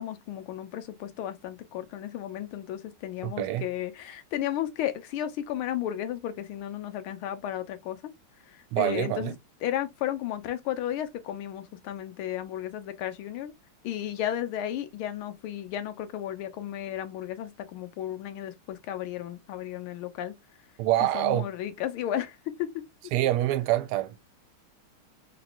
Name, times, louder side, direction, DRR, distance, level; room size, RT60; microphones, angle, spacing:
voice 1, 0.0-8.0 8.4-9.4 9.6-13.5 13.8-20.4 21.0-22.7, left 11 dB, 75° left, 1.6 m, -34 dB
voice 2, 3.2-3.6 8.7-9.3 20.8-21.5 23.1-24.2, right 14 dB, 85° right, 1.5 m, -26 dB
4.6 x 3.0 x 2.5 m
omnidirectional pair, 2.4 m